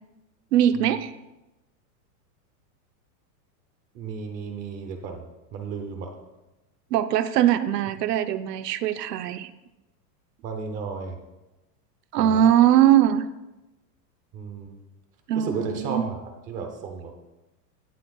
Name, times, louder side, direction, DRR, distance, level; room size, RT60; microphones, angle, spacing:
voice 1, 0.5-1.1 6.9-9.5 12.1-13.2 15.3-16.0, right 11 dB, 75° right, 10 dB, 0.8 m, -21 dB
voice 2, 3.9-6.1 10.4-11.2 12.2-12.5 14.3-14.8 15.3-17.1, right 5 dB, 15° right, 5 dB, 0.7 m, -34 dB
17.0 x 11.5 x 2.4 m, 1.0 s
supercardioid pair, 175°, 49 cm